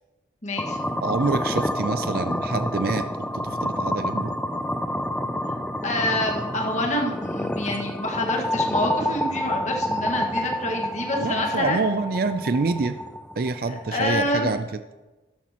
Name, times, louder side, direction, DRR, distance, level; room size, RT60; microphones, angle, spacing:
voice 1, 0.4-0.8 5.8-11.8 13.9-14.5, left 1 dB, 45° left, 0 dB, 1.8 m, -27 dB
sound 1, 0.6-14.6, left 1 dB, 5° left, 0.4 m, -28 dB
voice 2, 1.0-3.1 3.3-4.3 11.2-13.0 13.4-14.7, right 4 dB, 55° right, 10 dB, 0.5 m, -26 dB
13.0 x 11.5 x 3.0 m, 1.1 s
head